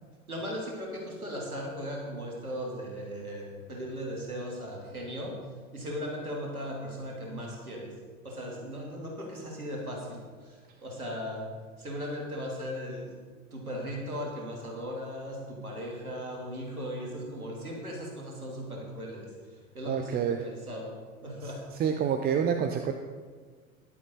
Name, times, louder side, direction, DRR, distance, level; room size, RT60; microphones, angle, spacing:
voice 1, 0.3-5.4 5.7-8.0 8.2-13.2 13.5-21.7, equal, 85° right, -1 dB, 2.9 m, -38 dB
voice 2, 19.9-20.4 21.8-22.9, right 8 dB, 20° right, 6 dB, 0.7 m, -27 dB
15.0 x 11.0 x 4.2 m, 1.5 s
figure-of-eight pair, 85°, 43 cm